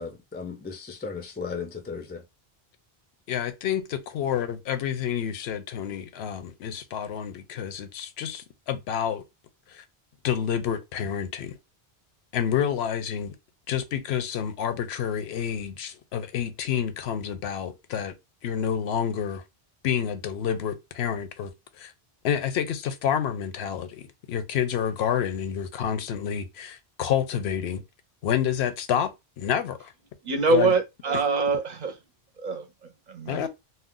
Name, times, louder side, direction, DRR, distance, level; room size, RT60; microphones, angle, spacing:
voice 1, 0.0-2.2, left 5 dB, 15° left, 0.4 m, -36 dB
voice 2, 3.3-9.2 9.7-9.8 10.2-11.6 12.3-13.4 13.7-18.2 18.4-19.4 19.8-21.9 22.2-27.8 28.2-29.9 30.5-30.7 33.3-33.5, left 9 dB, 80° left, 0.8 m, -29 dB
voice 3, 30.3-31.9 32.4-32.6 33.1-33.5, right 3 dB, 50° right, 0.6 m, -24 dB
2.4 x 2.2 x 3.6 m
omnidirectional pair, 1.1 m